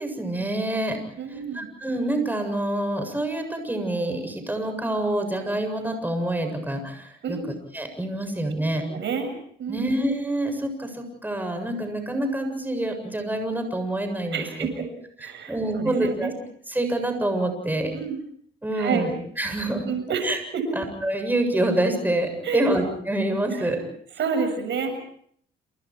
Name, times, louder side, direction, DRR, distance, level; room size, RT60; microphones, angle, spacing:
voice 1, 0.0-1.0 1.3-7.4 7.7-8.8 9.7-14.7 15.2-16.3 16.7-17.9 18.6-19.8 20.2-20.4 20.7-23.8, right 1 dB, 10° right, 5 dB, 7.5 m, -27 dB
voice 2, 1.2-1.7 7.2-7.5 8.9-9.3 9.6-9.9 14.3-14.9 15.2-16.3 17.9-18.2 18.7-19.1 19.9-20.6 22.4-22.8 23.5-23.8 24.2-24.9, right 5 dB, 70° right, 7 dB, 7.0 m, -29 dB
28.5 x 28.5 x 4.8 m, 0.62 s
cardioid pair, 90°, 20 cm